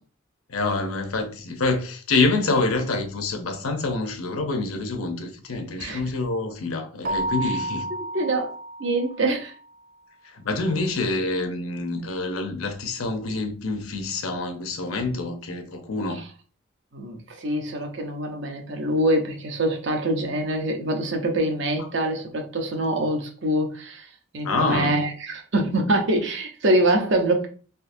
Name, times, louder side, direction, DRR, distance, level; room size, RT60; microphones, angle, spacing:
voice 1, 0.5-7.8 10.2-16.2 24.4-25.0, left 3 dB, 90° left, 0.7 m, -26 dB
Keyboard (musical), 7.0-9.5, right 1 dB, 40° right, 0.3 m, -31 dB
voice 2, 8.1-9.5 16.1-16.2 16.9-27.5, right 1 dB, 60° right, 0.7 m, -25 dB
3.7 x 2.7 x 2.6 m
head